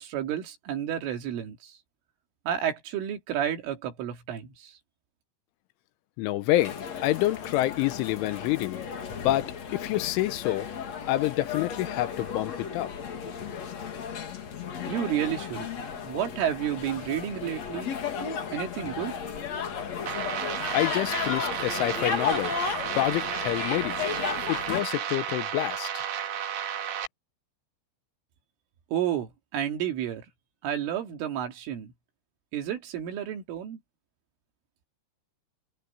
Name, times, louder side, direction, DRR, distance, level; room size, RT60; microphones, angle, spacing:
voice 1, 0.0-1.8 2.5-4.8 14.9-15.7 16.0-17.9 18.5-19.2 28.9-30.2 30.6-31.9 32.5-33.8, right 10 dB, 75° right, 5.1 m, -31 dB
voice 2, 6.2-8.8 9.2-10.7 11.1-12.9 20.7-22.6 22.9-24.0 24.5-26.1, left 15 dB, 80° left, 3.2 m, -27 dB
sound 1, 6.6-24.8, left 7 dB, 45° left, 2.6 m, -34 dB
sound 2, 20.1-27.1, right 9 dB, 60° right, 3.8 m, -32 dB
omnidirectional pair, 5.8 m